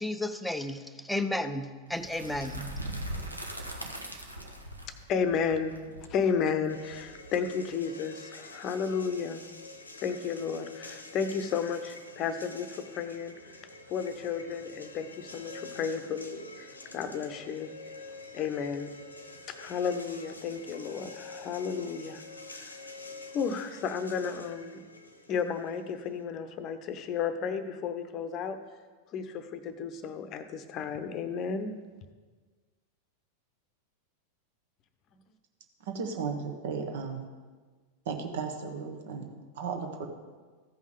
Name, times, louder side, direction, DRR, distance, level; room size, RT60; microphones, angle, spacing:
voice 1, 0.0-2.8, left 1 dB, 5° left, 9 dB, 0.6 m, -33 dB
sound 1, 1.9-7.7, right 1 dB, 90° right, 1.0 m, -40 dB
voice 2, 5.1-9.4 10.0-13.6 13.9-17.7 18.3-18.9 19.5-22.2 22.5-22.8 23.3-24.8 25.3-28.6 29.1-31.7, left 6 dB, 35° left, 10 dB, 0.8 m, -33 dB
sound 2, 6.7-26.2, left 2 dB, 80° left, 0.9 m, -48 dB
voice 3, 35.8-37.2 38.0-40.1, right 5 dB, 55° right, 4 dB, 1.3 m, -35 dB
14.5 x 5.5 x 4.8 m, 1.4 s
figure-of-eight pair, 90°, 0 cm